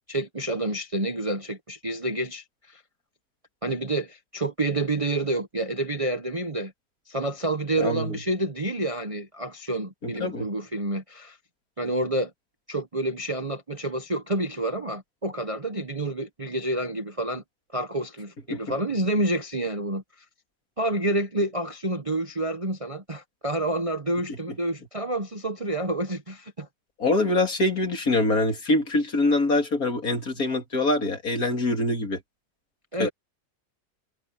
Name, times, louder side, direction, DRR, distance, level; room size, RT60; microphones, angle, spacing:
voice 1, 0.1-2.8 3.6-6.7 7.1-11.4 11.8-12.3 12.7-17.4 17.7-20.0 20.8-26.7 32.9-33.1, right 1 dB, 25° right, 0.9 m, -28 dB
voice 2, 7.8-8.2 10.0-10.5 18.5-18.6 24.3-24.4 27.0-32.2 33.0-33.1, left 2 dB, 55° left, 3.2 m, -24 dB
omnidirectional pair, 1.8 m